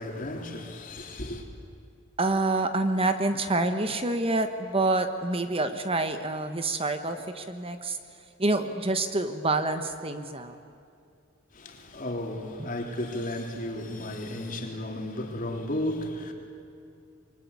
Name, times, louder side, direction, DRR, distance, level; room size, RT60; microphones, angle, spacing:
voice 1, 0.0-1.4 11.5-16.3, left 1 dB, 45° left, 3.5 m, -34 dB
voice 2, 2.2-8.0 8.4-10.6, right 2 dB, 30° right, 1.3 m, -27 dB
26.5 x 23.0 x 9.7 m
head